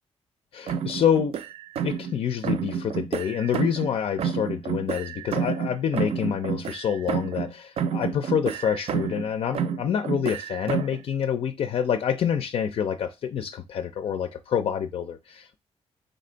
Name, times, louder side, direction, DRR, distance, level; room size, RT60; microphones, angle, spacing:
voice 1, 0.5-1.4 1.8-15.6, left 8 dB, 60° left, 0.4 m, -27 dB
sound 1, 0.7-2.2 2.4-7.5 7.8-9.3 9.5-11.0, right 7 dB, 65° right, 0.4 m, -29 dB
3.9 x 3.3 x 3.8 m
wide cardioid pair, 140°, 11 cm